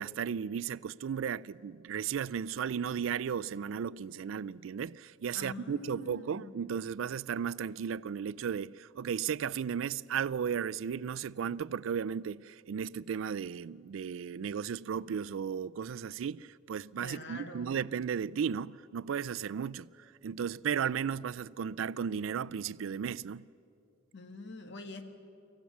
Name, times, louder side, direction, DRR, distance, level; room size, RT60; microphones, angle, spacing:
voice 1, 0.0-19.9 20.2-23.5, right 7 dB, 85° right, 0.4 m, -35 dB
voice 2, 5.3-6.6 17.0-17.8 24.1-25.0, left 2 dB, 60° left, 1.5 m, -45 dB
25.0 x 15.0 x 7.3 m
head